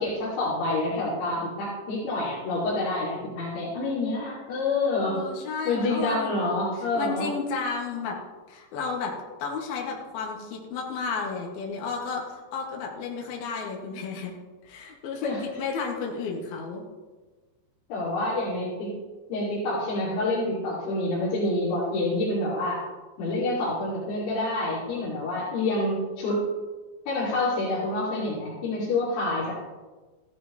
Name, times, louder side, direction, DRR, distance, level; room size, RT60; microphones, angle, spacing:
voice 1, 0.0-5.2 5.7-7.3 15.2-15.4 17.9-18.9 19.3-22.8 23.2-26.4 27.1-29.6, left 2 dB, 85° left, -8 dB, 4.8 m, -27 dB
voice 2, 5.0-6.5 6.8-8.2 8.5-9.1 9.4-14.3 14.6-16.9, left 5 dB, 65° left, -1 dB, 3.5 m, -32 dB
15.0 x 13.5 x 3.1 m, 1.3 s
omnidirectional pair, 5.0 m